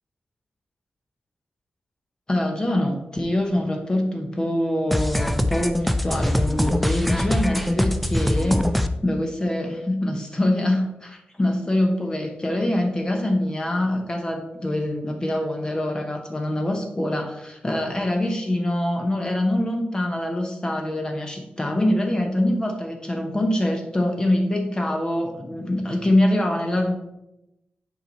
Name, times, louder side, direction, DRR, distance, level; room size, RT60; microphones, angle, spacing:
voice 1, 2.3-8.6 9.0-26.9, left 1 dB, 20° left, 3 dB, 0.9 m, -24 dB
sound 1, 4.9-8.9, left 1 dB, ahead, 0.4 m, -23 dB
9.5 x 4.6 x 4.1 m, 0.89 s
wide cardioid pair, 160°, 4 cm